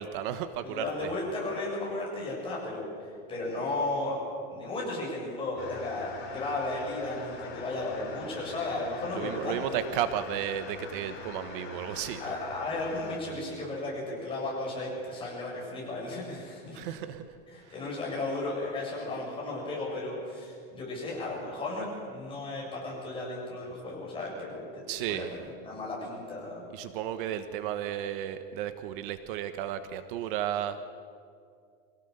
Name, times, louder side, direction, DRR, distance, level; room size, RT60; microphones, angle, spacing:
voice 1, 0.0-1.1 9.1-12.4 16.7-17.2 24.9-25.3 26.7-30.8, right 10 dB, 60° right, 10 dB, 1.2 m, -33 dB
voice 2, 0.6-2.9 3.3-4.2 4.5-9.8 12.2-16.9 17.5-26.6, left 2 dB, 15° left, -4 dB, 7.8 m, -35 dB
sound 1, 5.6-13.2, left 5 dB, 35° left, 4.2 m, -43 dB
25.0 x 17.5 x 6.8 m, 2.3 s
supercardioid pair, 150°, 30 cm